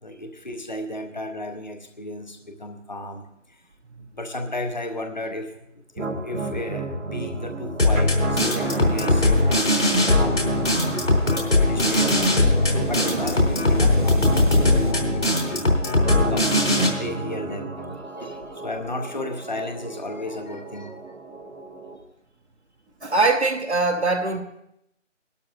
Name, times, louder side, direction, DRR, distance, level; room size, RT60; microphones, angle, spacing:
voice 1, 0.0-3.6 4.1-5.6 5.9-10.6 11.6-15.7 16.1-21.0, left 1 dB, 35° left, 0.8 m, -34 dB
sound 1, 6.0-22.0, right 3 dB, 85° right, 2.3 m, -32 dB
sound 2, 7.8-16.9, left 2 dB, 65° left, 3.5 m, -20 dB
sound 3, 8.6-14.9, right 1 dB, 40° right, 0.6 m, -33 dB
voice 2, 23.0-24.4, right 3 dB, 60° right, 1.0 m, -21 dB
21.0 x 12.5 x 2.5 m
figure-of-eight pair, 175°, 38 cm